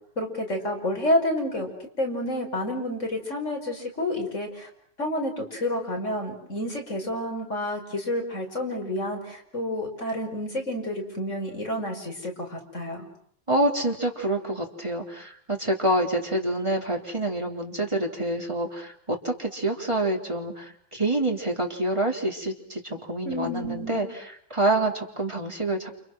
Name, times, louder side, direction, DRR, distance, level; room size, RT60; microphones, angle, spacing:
voice 1, 0.2-1.7 2.0-4.7 5.0-13.1 23.2-24.0, left 1 dB, 35° left, 2 dB, 6.0 m, -29 dB
voice 2, 13.5-20.6 20.9-24.1 24.5-25.9, right 1 dB, 15° right, 2 dB, 3.5 m, -27 dB
29.5 x 29.0 x 6.3 m, 0.65 s
omnidirectional pair, 2.2 m